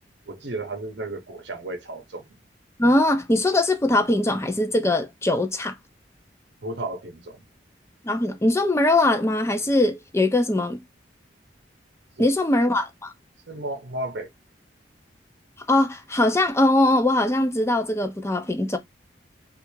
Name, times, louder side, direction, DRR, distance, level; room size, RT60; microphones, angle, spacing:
voice 1, 0.3-2.3 6.6-7.4 12.2-12.3 13.5-14.3, right 2 dB, 70° right, 0.8 m, -33 dB
voice 2, 2.8-5.8 8.0-10.8 12.2-13.1 15.7-18.8, left 1 dB, 15° left, 0.5 m, -21 dB
3.3 x 2.5 x 3.0 m
head